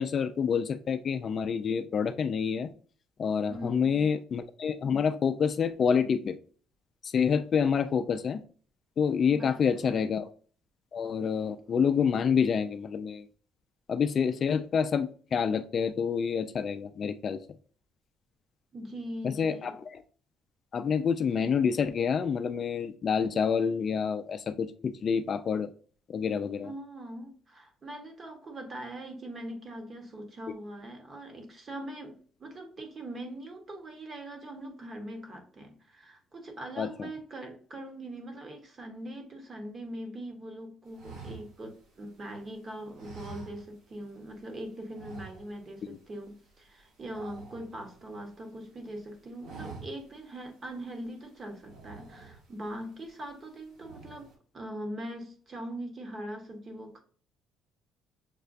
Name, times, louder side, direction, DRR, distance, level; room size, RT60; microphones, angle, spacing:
voice 1, 0.0-2.7 3.2-6.4 7.0-8.4 9.0-10.3 10.9-13.2 13.9-17.4 19.2-20.0 20.7-25.7 26.1-26.7 36.8-37.1 45.9-46.0, left 6 dB, 45° left, 0.3 m, -28 dB
voice 2, 3.5-4.1 9.3-10.1 18.7-19.8 26.6-57.0, right 1 dB, 35° right, 1.1 m, -42 dB
sound 1, 40.9-42.4 42.9-44.1 44.3-44.5 44.9-45.8 46.1-46.3 46.6-48.3 48.7-49.0 49.3-50.2 50.7-50.8 51.5-52.7 53.1-53.5 53.7-54.3, right 4 dB, 70° right, 1.3 m, -47 dB
6.5 x 2.2 x 2.5 m
cardioid pair, 105°, 0 cm